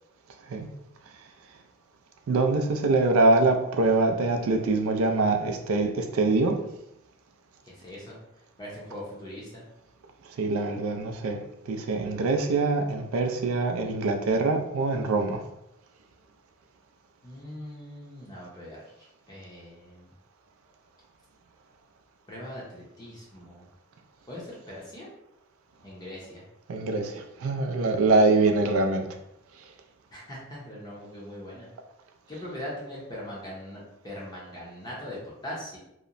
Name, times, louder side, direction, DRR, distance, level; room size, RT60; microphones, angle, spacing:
voice 1, 2.3-6.6 10.2-15.4 26.7-29.2, right 3 dB, 70° right, 5 dB, 0.4 m, -24 dB
voice 2, 7.6-8.2 8.6-9.6 17.2-20.1 22.3-23.7 24.3-25.1 25.8-26.4 30.1-31.7 32.3-35.8, left 1 dB, 20° left, -5 dB, 0.5 m, -41 dB
2.8 x 2.0 x 2.5 m, 0.84 s
head